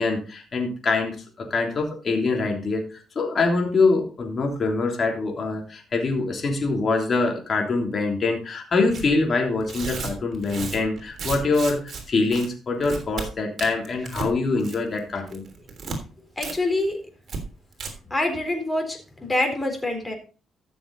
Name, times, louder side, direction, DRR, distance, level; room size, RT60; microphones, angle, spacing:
voice 1, 0.0-2.8 3.1-15.4, left 3 dB, 45° left, 2 dB, 3.3 m, -24 dB
Tearing, 8.9-9.1 9.6-12.0 12.3-12.5 12.8-13.3 13.6-14.3 14.6-15.0 15.3-16.0 16.4-16.5 16.8-16.9 17.3-17.4 17.7-17.9, right 4 dB, 50° right, 3.3 m, -33 dB
voice 2, 16.4-17.0 18.1-20.1, left 2 dB, 15° left, 3 dB, 4.0 m, -25 dB
14.0 x 6.8 x 4.1 m, 0.35 s
cardioid pair, 90°, 0 cm